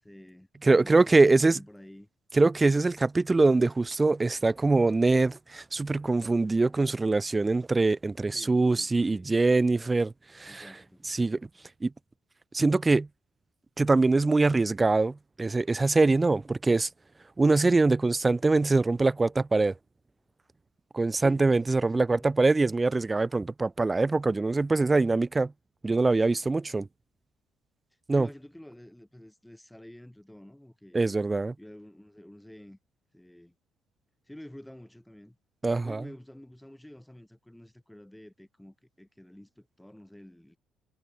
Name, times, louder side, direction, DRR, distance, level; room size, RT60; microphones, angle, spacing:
voice 1, 0.0-2.1 8.3-9.3 10.4-11.1 21.2-22.3 28.1-31.0 31.6-32.8 33.1-33.5 34.3-35.4 35.8-40.6, left 1 dB, 5° left, 7.9 m, -49 dB
voice 2, 0.6-1.6 2.3-10.7 11.0-11.4 11.8-11.9 12.5-13.1 13.8-16.9 17.4-19.7 20.9-25.5 25.8-26.9 28.1-28.3 30.9-31.5 35.6-36.0, right 3 dB, 20° right, 0.4 m, -23 dB
figure-of-eight pair, 45°, 0 cm